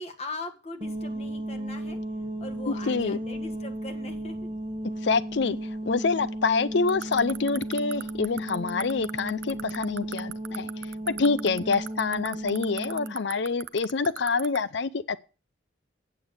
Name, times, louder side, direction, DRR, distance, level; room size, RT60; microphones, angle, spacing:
voice 1, 0.0-2.0 2.4-4.5, left 2 dB, 30° left, 1.6 m, -40 dB
sound 1, 0.8-13.2, right 1 dB, 25° right, 1.4 m, -35 dB
voice 2, 2.7-3.2 5.0-5.6 5.8-15.2, left 4 dB, 60° left, 0.5 m, -26 dB
sound 2, 6.9-14.6, right 11 dB, 75° right, 0.5 m, -35 dB
8.1 x 7.7 x 6.5 m
head